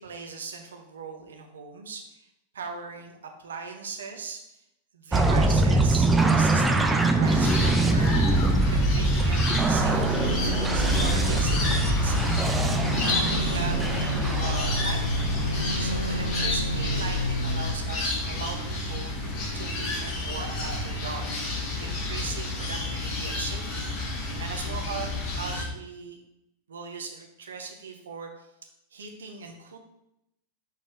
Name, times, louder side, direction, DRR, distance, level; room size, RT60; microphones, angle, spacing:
voice 1, 0.0-2.0 2.5-4.4 4.9-8.1 8.7-10.3 10.7-12.2 13.1-15.4 15.8-19.1 19.5-26.2 26.7-28.3 28.9-29.8, right 5 dB, 65° right, 4 dB, 1.0 m, -39 dB
sound 1, 5.1-16.2, right 2 dB, 10° right, 0.6 m, -24 dB
sound 2, 7.2-25.6, left 1 dB, 35° left, 1.9 m, -30 dB
sound 3, 9.8-17.7, equal, 90° left, 0.4 m, -30 dB
6.4 x 4.1 x 4.9 m, 0.84 s
figure-of-eight pair, 90°, 0 cm